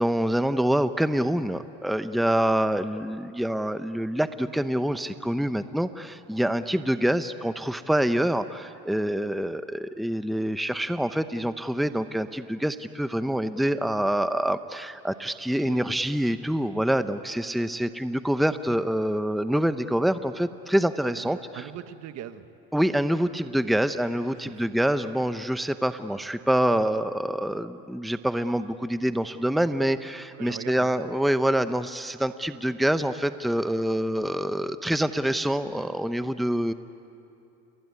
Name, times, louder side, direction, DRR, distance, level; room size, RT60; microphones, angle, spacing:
voice 1, 0.0-21.4 22.7-36.7, right 1 dB, ahead, 11 dB, 0.8 m, -26 dB
voice 2, 21.1-22.4 24.4-24.8 30.3-30.9, right 11 dB, 60° right, 10 dB, 1.5 m, -41 dB
29.0 x 21.0 x 9.7 m, 2.8 s
supercardioid pair, 95°, 29 cm